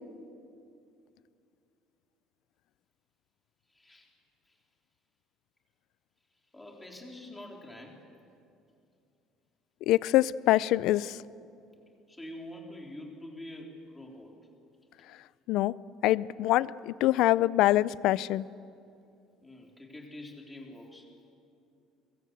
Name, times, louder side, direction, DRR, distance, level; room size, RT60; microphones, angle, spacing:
voice 1, 3.7-4.1 4.5-4.6 6.5-8.0 12.1-14.4 19.4-21.1, left 1 dB, 10° left, 0 dB, 3.6 m, -46 dB
voice 2, 9.9-11.2 15.5-15.7 16.0-18.5, left 15 dB, 70° left, 19 dB, 0.5 m, -24 dB
23.5 x 22.0 x 8.0 m, 2.5 s
cardioid pair, 145°, 0 cm